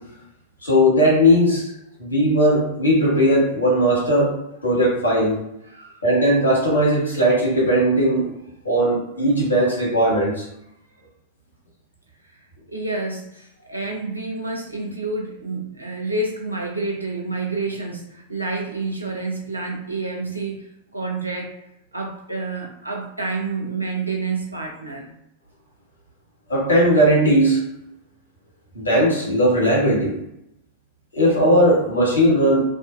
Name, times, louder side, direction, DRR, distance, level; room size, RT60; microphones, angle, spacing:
voice 1, 0.6-1.7 2.0-4.3 4.6-5.3 6.0-8.2 8.6-10.3 26.5-27.6 28.8-30.1 31.1-32.6, equal, 75° left, -4 dB, 1.1 m, -18 dB
voice 2, 12.7-20.6 20.9-21.5 21.9-25.1, right 3 dB, 85° right, 0 dB, 0.6 m, -28 dB
2.5 x 2.4 x 2.4 m, 0.81 s
figure-of-eight pair, 90°, 0 cm